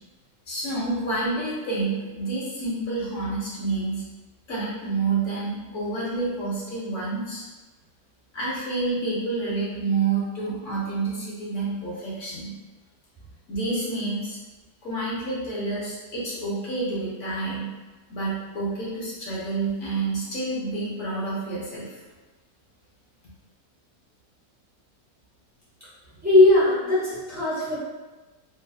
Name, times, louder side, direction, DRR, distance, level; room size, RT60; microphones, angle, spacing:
voice 1, 0.5-4.0 4.5-7.4 8.3-12.5 13.5-14.4 14.8-17.7 18.1-22.0, right 3 dB, 55° left, -7 dB, 1.1 m, -28 dB
voice 2, 26.2-27.8, left 2 dB, 20° right, -10 dB, 0.4 m, -19 dB
3.2 x 2.5 x 2.3 m, 1.2 s
omnidirectional pair, 1.8 m